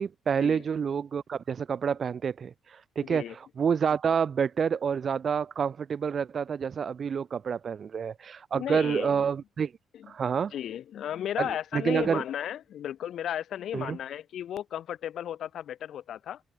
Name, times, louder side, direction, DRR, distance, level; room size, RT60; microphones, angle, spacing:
voice 1, 0.0-9.7 10.1-10.5 11.4-12.2 13.7-14.0, right 7 dB, 50° right, 2.2 m, -28 dB
voice 2, 3.0-3.3 8.5-9.2 9.9-10.1 10.5-16.4, left 10 dB, 70° left, 2.1 m, -35 dB
open air
cardioid pair, 90°, 0 cm